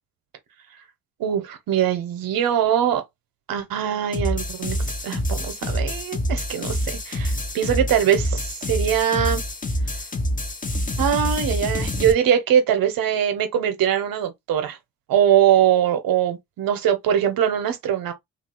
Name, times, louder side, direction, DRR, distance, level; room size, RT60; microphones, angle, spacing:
voice 1, 1.2-3.0 3.5-4.8 5.0-9.4 11.0-14.8 15.1-18.1, right 9 dB, 60° right, 0.9 m, -22 dB
sound 1, 4.1-12.1, left 1 dB, 20° left, 0.9 m, -26 dB
2.7 x 2.4 x 3.0 m
hypercardioid pair, 40°, 39 cm